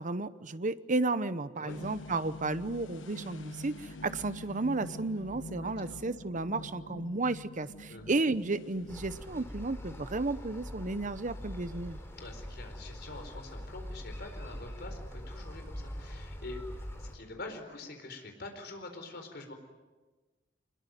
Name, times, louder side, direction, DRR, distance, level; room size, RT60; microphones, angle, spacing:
voice 1, 0.0-12.0, right 3 dB, 45° right, 14 dB, 0.9 m, -33 dB
sound 1, 1.7-9.6, left 1 dB, 90° left, 1.2 m, -46 dB
voice 2, 5.6-6.0 7.9-8.1 12.1-16.6 17.0-19.5, left 2 dB, 60° left, 5 dB, 4.3 m, -45 dB
sound 2, 8.9-17.2, equal, 15° left, 3.6 m, -43 dB
25.0 x 21.5 x 9.4 m, 1.3 s
head